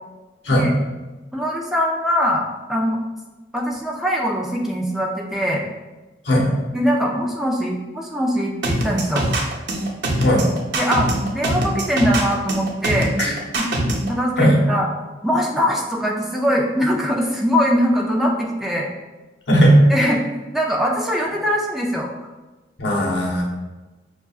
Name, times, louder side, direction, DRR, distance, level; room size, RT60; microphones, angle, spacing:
voice 1, 1.3-3.0 3.5-5.6 6.7-9.3 10.7-13.1 14.1-14.9 15.2-18.9 19.9-20.2 20.5-22.1, equal, ahead, -2 dB, 0.4 m, -22 dB
sound 1, 8.6-14.1, right 1 dB, 80° right, 0.7 m, -22 dB
voice 2, 13.2-13.7 14.4-14.6 19.5-19.8 22.8-23.4, equal, 90° left, -2 dB, 0.9 m, -17 dB
5.5 x 2.4 x 2.3 m, 1.1 s
head